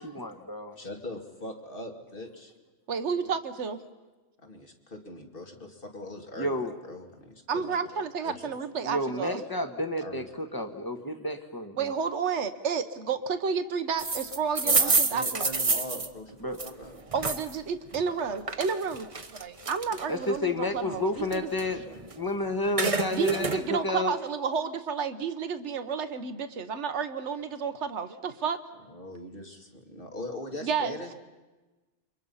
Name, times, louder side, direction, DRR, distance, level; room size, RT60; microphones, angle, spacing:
voice 1, 0.1-0.8 6.4-6.7 8.8-11.9 16.4-16.6 20.1-21.8 22.2-24.2, left 1 dB, 20° left, 7 dB, 1.5 m, -30 dB
voice 2, 0.8-2.5 3.2-3.3 4.4-8.6 10.0-10.3 14.6-16.3 16.6-17.0 21.7-22.0 28.9-31.1, left 1 dB, 45° left, 3 dB, 2.7 m, -41 dB
voice 3, 2.9-3.8 7.5-9.4 11.8-15.4 17.1-19.1 19.4-21.5 23.1-28.6 30.6-31.0, right 6 dB, 70° right, 10 dB, 1.4 m, -31 dB
sound 1, 14.0-17.5 17.9-20.3 20.7-22.3 22.5-23.6, right 3 dB, 30° right, 1.1 m, -28 dB
29.0 x 24.5 x 5.6 m, 1.2 s
omnidirectional pair, 1.2 m